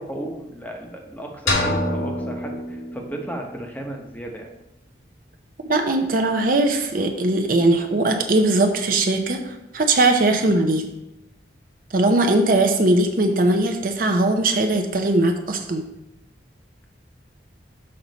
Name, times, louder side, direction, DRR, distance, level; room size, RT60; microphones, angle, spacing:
voice 1, 0.0-4.5 10.4-10.5, right 1 dB, 10° left, 1 dB, 0.9 m, -34 dB
sound 1, 1.5-3.4, left 1 dB, 85° left, 1.8 m, -25 dB
voice 2, 5.7-10.9 11.9-15.8, right 2 dB, 50° right, 4 dB, 0.7 m, -20 dB
6.5 x 5.6 x 4.0 m, 0.89 s
head